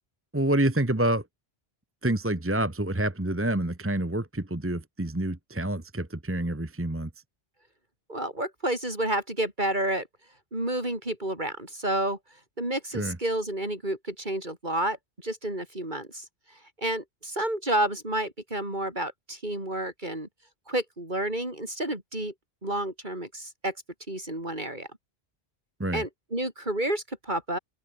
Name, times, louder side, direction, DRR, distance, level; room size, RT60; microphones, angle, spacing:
voice 1, 0.3-1.2 2.0-7.1 12.9-13.2 25.8-26.0, right 1 dB, 15° right, 1.3 m, -27 dB
voice 2, 8.1-10.1 10.5-12.2 12.6-15.0 15.2-16.2 16.8-20.3 20.7-22.3 22.6-23.7 24.1-24.9 25.9-27.6, right 1 dB, 50° right, 6.6 m, -30 dB
open air
omnidirectional pair, 1.0 m